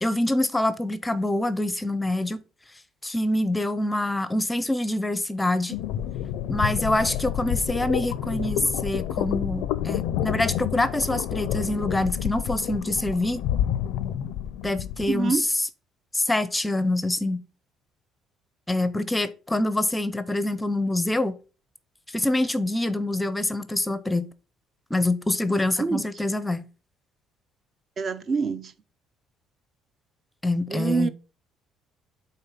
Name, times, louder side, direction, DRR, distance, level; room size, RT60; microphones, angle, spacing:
voice 1, 0.0-2.4 3.0-5.8 6.5-13.4 14.6-15.7 16.1-17.4 18.7-21.4 22.1-24.3 24.9-26.7 30.4-31.1, left 1 dB, 10° left, 0.5 m, -25 dB
sound 1, 5.7-15.1, left 11 dB, 85° left, 0.4 m, -29 dB
voice 2, 15.1-15.4 25.8-26.0 28.0-28.7 30.7-31.1, right 4 dB, 45° right, 0.7 m, -25 dB
5.6 x 3.9 x 5.7 m
cardioid pair, 95°, 0 cm